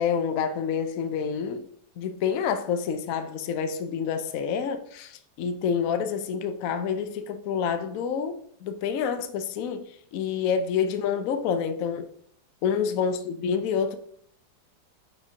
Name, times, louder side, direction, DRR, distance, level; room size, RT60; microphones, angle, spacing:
voice 1, 0.0-1.7 2.0-12.1 12.6-14.0, left 7 dB, 70° left, 0.8 m, -28 dB
9.8 x 4.4 x 2.7 m
omnidirectional pair, 1.9 m